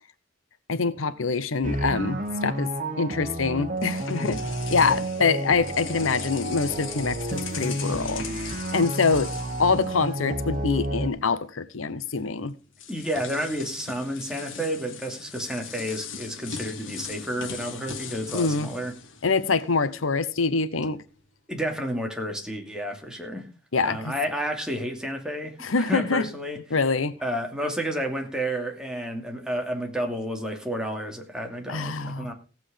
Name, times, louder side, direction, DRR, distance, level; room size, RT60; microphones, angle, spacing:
voice 1, 0.7-2.7 3.0-4.4 4.7-8.2 8.7-9.3 9.6-12.6 18.3-18.7 19.2-21.0 23.7-24.1 25.6-26.3 26.7-27.2 31.7-32.3, left 4 dB, 90° left, 0.9 m, -25 dB
sound 1, 1.6-11.1, right 1 dB, 40° right, 2.2 m, -31 dB
sound 2, 3.3-10.6 10.8-11.1 12.2-12.3 12.7-19.9, left 6 dB, 70° left, 1.8 m, -39 dB
voice 2, 12.9-18.9 21.5-23.5 23.8-26.6 27.2-32.3, equal, 5° right, 2.6 m, -31 dB
16.5 x 8.1 x 5.1 m
head